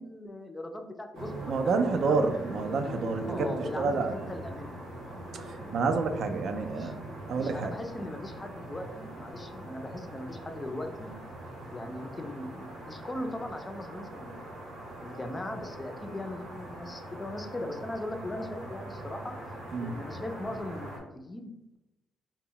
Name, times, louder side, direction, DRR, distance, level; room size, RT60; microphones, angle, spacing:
voice 1, 0.0-2.2 2.6-2.8 3.2-4.8 6.7-6.9 7.4-11.2 11.7-14.5 15.0-19.3 19.8-21.8, left 1 dB, 20° left, 6 dB, 0.4 m, -39 dB
sound 1, 1.1-21.0, right 1 dB, 80° right, 0.8 m, -42 dB
voice 2, 1.5-3.5 3.8-4.1 5.4-6.9 7.3-7.7 19.7-20.0, right 4 dB, 65° right, 8 dB, 0.3 m, -28 dB
2.1 x 2.0 x 3.7 m, 0.96 s
cardioid pair, 90°, 0 cm